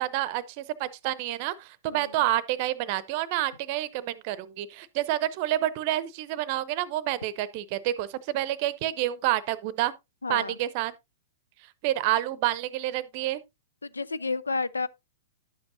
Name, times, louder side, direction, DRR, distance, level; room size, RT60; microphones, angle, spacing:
voice 1, 0.0-9.9 10.3-10.9 11.8-13.4, right 14 dB, 40° right, 0.7 m, -28 dB
voice 2, 1.8-2.2 10.2-10.6 13.8-14.9, left 3 dB, 80° left, 0.4 m, -31 dB
11.0 x 7.9 x 2.6 m
figure-of-eight pair, 105°, 0 cm